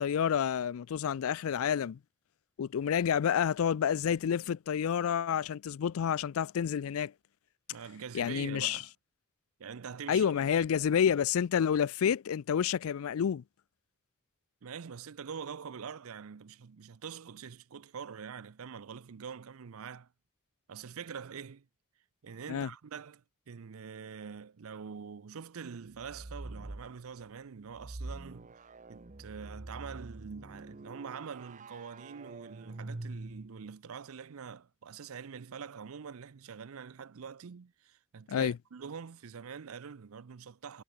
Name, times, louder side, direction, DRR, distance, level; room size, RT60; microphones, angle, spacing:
voice 1, 0.0-2.0 2.6-7.1 8.1-8.8 10.1-13.4 22.5-22.7 38.3-38.5, left 8 dB, 70° left, 0.4 m, -29 dB
voice 2, 7.7-8.9 9.6-10.3 14.6-20.1 20.7-21.7 22.2-28.5 28.9-40.8, right 6 dB, 70° right, 0.5 m, -45 dB
sound 1, 25.9-26.9 27.7-33.7, right 2 dB, 35° right, 0.8 m, -45 dB
head